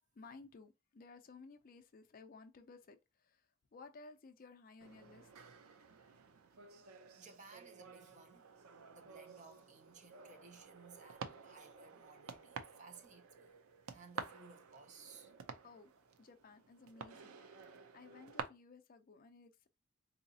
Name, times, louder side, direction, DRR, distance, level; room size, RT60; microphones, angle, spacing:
voice 1, 0.2-3.5 3.7-5.3 15.6-15.9 16.2-17.4 17.9-19.7, left 4 dB, 40° left, 0.4 m, -57 dB
sound 1, 4.8-18.4, right 6 dB, 85° right, 0.5 m, -51 dB
voice 2, 7.2-8.5 8.9-13.5 13.9-15.3, right 4 dB, 35° right, 0.6 m, -59 dB
3.9 x 2.8 x 2.7 m
head